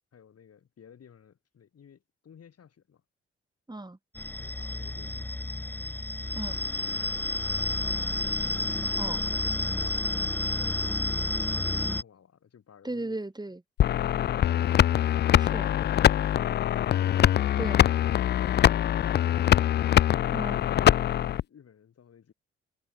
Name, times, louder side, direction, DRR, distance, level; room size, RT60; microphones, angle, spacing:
voice 1, 0.1-3.0 4.4-5.3 6.9-8.0 9.4-13.2 21.0-22.3, left 8 dB, 50° left, 7.3 m, -55 dB
voice 2, 3.7-4.0 6.3-6.6 8.9-9.2 12.8-13.6 15.4-15.7 17.6-17.9 20.3-20.7, right 2 dB, 15° right, 3.0 m, -36 dB
sound 1, 4.1-12.0, left 1 dB, 5° left, 0.7 m, -30 dB
sound 2, 13.8-21.4, left 11 dB, 35° left, 0.4 m, -23 dB
hypercardioid pair, 40°, 30 cm